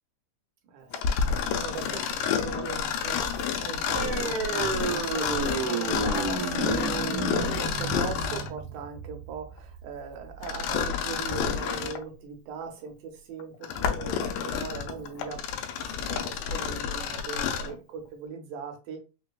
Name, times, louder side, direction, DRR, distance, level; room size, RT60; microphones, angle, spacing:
voice 1, 0.6-15.4 15.8-19.0, right 6 dB, 75° right, 4 dB, 2.2 m, -39 dB
Mechanisms, 0.9-8.6 10.4-12.0 12.6-12.7 13.4-17.8, left 7 dB, 85° left, 2.1 m, -29 dB
sound 1, 3.9-11.0, right 5 dB, 55° right, 1.8 m, -32 dB
5.1 x 2.2 x 2.3 m, 0.31 s
omnidirectional pair, 3.6 m